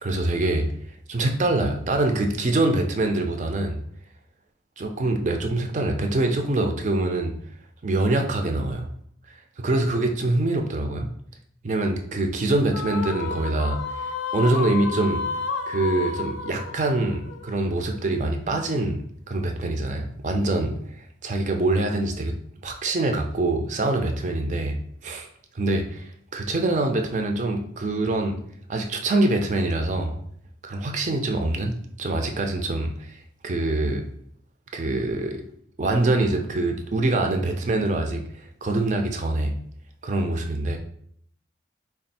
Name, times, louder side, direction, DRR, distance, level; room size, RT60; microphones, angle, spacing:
voice 1, 0.0-0.7 1.1-3.8 4.8-7.4 7.8-8.9 9.6-11.1 11.6-13.8 14.3-15.2 15.7-19.0 19.3-20.8 21.2-22.3 22.6-24.8 25.0-25.3 25.5-28.4 28.7-30.2 30.6-34.0 34.7-35.4 35.8-38.2 38.6-39.5 40.0-40.8, right 2 dB, 40° right, 4 dB, 0.4 m, -24 dB
sound 1, 12.7-18.2, left 5 dB, 90° left, 0.4 m, -31 dB
3.4 x 2.4 x 4.1 m, 0.65 s
head